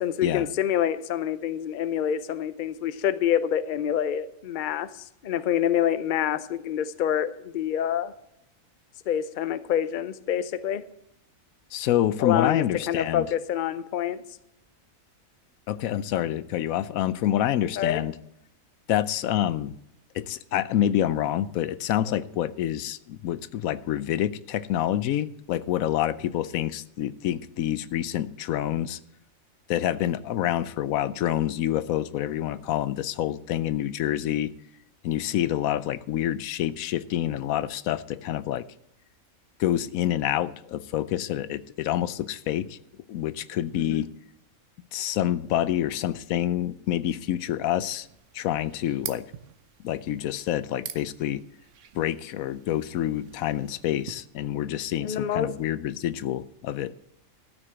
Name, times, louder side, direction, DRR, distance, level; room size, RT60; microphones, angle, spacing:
voice 1, 0.0-4.9 5.2-8.1 9.1-10.8 12.2-14.2 17.8-18.0 43.7-44.0 55.0-55.5, left 9 dB, 50° left, 14 dB, 0.6 m, -26 dB
voice 2, 11.7-13.3 15.7-18.1 18.9-19.7 20.1-29.0 29.7-34.5 35.0-38.6 39.6-42.8 43.1-44.1 44.9-48.1 48.3-49.2 49.8-51.4 51.9-56.9, left 12 dB, 85° left, 16 dB, 1.0 m, -27 dB
sound 1, 47.7-54.2, right 9 dB, 65° right, 1.1 m, -45 dB
13.5 x 6.2 x 7.9 m, 0.80 s
omnidirectional pair, 1.4 m